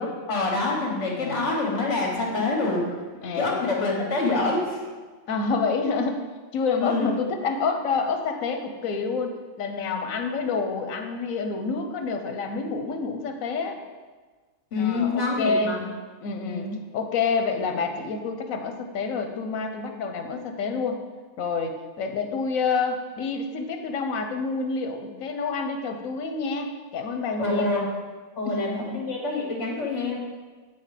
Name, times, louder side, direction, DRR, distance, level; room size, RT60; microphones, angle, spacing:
voice 1, 0.0-2.8 3.4-4.8 6.8-7.1 14.7-15.8 16.5-16.8 27.4-27.8 28.4-30.2, left 3 dB, 60° left, -1 dB, 1.8 m, -26 dB
voice 2, 1.1-1.5 3.2-4.1 5.3-6.2 6.5-13.8 14.8-15.8 16.2-21.0 21.4-27.7 28.5-28.9, left 4 dB, 90° left, 5 dB, 1.2 m, -28 dB
8.9 x 4.2 x 5.0 m, 1.4 s
omnidirectional pair, 1.4 m